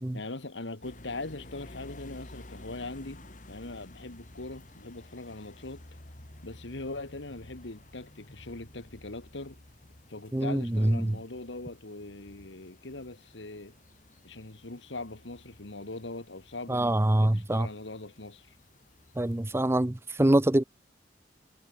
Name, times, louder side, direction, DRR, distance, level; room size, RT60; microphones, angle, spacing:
voice 1, 0.1-5.8 6.4-9.6 10.1-13.8 14.2-18.6, left 2 dB, 80° left, 1.9 m, -41 dB
sound 1, 0.8-19.5, left 1 dB, 45° left, 2.7 m, -52 dB
voice 2, 10.3-11.2 16.7-17.7 19.2-20.6, right 1 dB, 15° right, 0.5 m, -25 dB
head